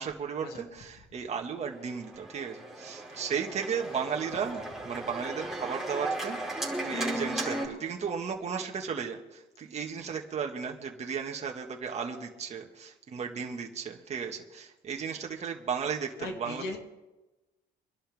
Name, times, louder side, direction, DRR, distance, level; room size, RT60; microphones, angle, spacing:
voice 1, 0.0-16.6, right 6 dB, 40° right, 2 dB, 1.9 m, -35 dB
Organ, 1.8-7.7, right 1 dB, ahead, 4.6 m, -35 dB
voice 2, 16.2-16.8, left 3 dB, 75° left, 2 dB, 2.6 m, -38 dB
25.5 x 11.5 x 3.6 m, 1.1 s
cardioid pair, 110°, 17 cm